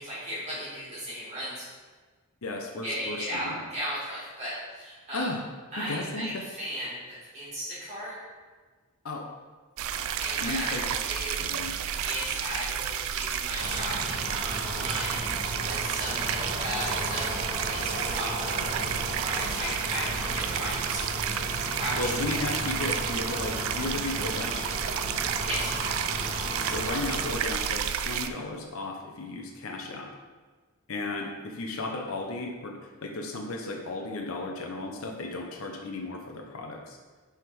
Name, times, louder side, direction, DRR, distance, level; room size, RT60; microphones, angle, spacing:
voice 1, 0.0-1.7 2.8-5.3 5.7-8.2 9.9-11.5 12.0-15.3 15.6-18.7 19.1-21.1 21.7-22.2 25.2-25.7, equal, 30° right, -9 dB, 1.8 m, -36 dB
voice 2, 2.4-3.6 5.1-5.4 5.8-6.5 9.0-9.3 10.4-10.8 11.4-11.7 21.9-24.7 26.6-30.1 30.9-37.0, left 2 dB, 65° left, 1 dB, 0.7 m, -34 dB
sound 1, 9.8-28.3, right 9 dB, 65° right, 0.3 m, -31 dB
sound 2, 13.6-27.3, left 1 dB, 50° left, 1.4 m, -35 dB
5.9 x 3.6 x 4.6 m, 1.4 s
head